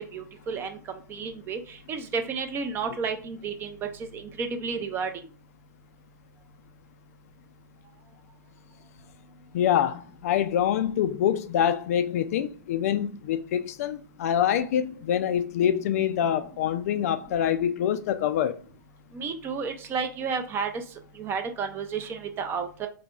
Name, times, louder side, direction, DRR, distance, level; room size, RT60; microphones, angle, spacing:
voice 1, 0.0-5.3 19.1-20.8 21.2-22.9, right 5 dB, 20° right, 0.5 m, -32 dB
voice 2, 9.5-18.5, left 9 dB, 50° left, 0.3 m, -25 dB
4.0 x 2.8 x 2.3 m
hypercardioid pair, 120°, 11 cm